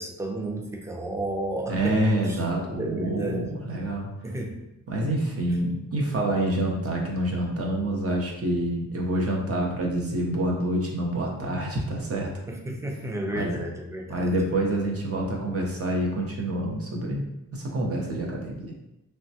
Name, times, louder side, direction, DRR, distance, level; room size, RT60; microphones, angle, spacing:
voice 1, 0.0-2.4 2.8-3.5 4.2-4.6 12.5-14.3, right 1 dB, 10° right, 2 dB, 0.4 m, -32 dB
voice 2, 1.7-4.1 4.9-12.3 13.3-13.5 14.1-17.2 17.5-18.7, right 1 dB, 45° right, -1 dB, 0.7 m, -27 dB
3.2 x 2.1 x 2.7 m, 0.90 s
wide cardioid pair, 95°, 33 cm